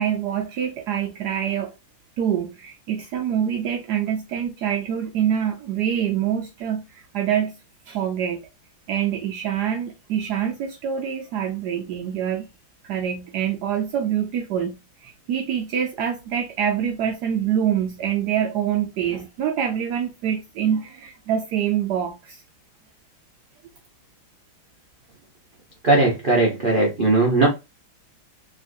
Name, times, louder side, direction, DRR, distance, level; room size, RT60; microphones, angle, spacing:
voice 1, 0.0-1.7 2.2-7.6 7.9-8.5 8.9-12.5 12.8-22.4, right 9 dB, 90° right, 0.8 m, -25 dB
voice 2, 25.8-27.5, right 2 dB, 70° right, 0.5 m, -18 dB
3.4 x 3.0 x 2.5 m
omnidirectional pair, 2.3 m